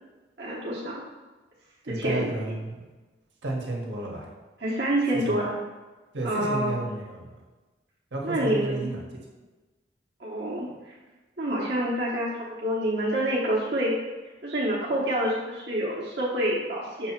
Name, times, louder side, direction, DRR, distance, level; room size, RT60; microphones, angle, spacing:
voice 1, 0.4-1.0 1.9-2.3 4.6-5.5 6.2-6.8 8.2-8.9 10.2-10.7 11.4-14.0 14.4-17.1, right 1 dB, 65° right, -6 dB, 1.1 m, -27 dB
voice 2, 1.8-2.8 3.4-4.3 5.2-5.3 6.1-7.3 8.1-9.0, right 2 dB, 85° right, -2 dB, 1.4 m, -32 dB
6.6 x 2.9 x 5.8 m, 1.2 s
head